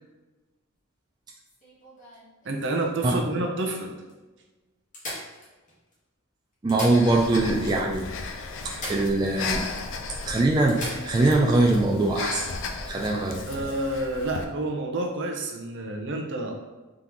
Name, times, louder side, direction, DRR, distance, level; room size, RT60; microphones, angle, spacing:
sound 1, 1.4-3.0 3.7-3.8 4.1-4.2 4.9-5.9 6.5-7.5 7.8-7.9 8.7-9.6 9.9-10.0 10.7-11.3 13.2-13.4, left 1 dB, 35° left, 1.2 m, -39 dB
voice 1, 2.4-4.0 12.9-13.0 13.4-16.5, right 2 dB, 55° right, 3 dB, 0.7 m, -29 dB
voice 2, 6.6-8.0 8.6-9.6 10.3-10.8 11.0-12.4 12.9-13.4, right 2 dB, 20° right, -2 dB, 0.3 m, -22 dB
Breathing, 6.9-14.4, left 4 dB, 60° left, 0.4 m, -35 dB
3.8 x 3.6 x 3.0 m, 1.2 s
head